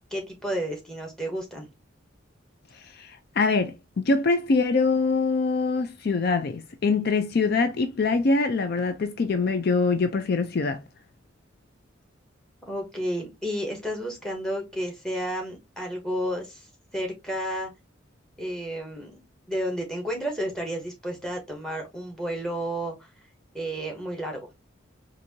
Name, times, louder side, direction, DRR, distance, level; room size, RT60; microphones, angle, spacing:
voice 1, 0.1-1.7 12.7-16.7 16.9-17.7 18.4-22.9 23.5-24.5, equal, 5° left, 1.2 m, -31 dB
voice 2, 2.7-10.8, left 4 dB, 55° left, 0.4 m, -24 dB
4.4 x 2.6 x 2.7 m
head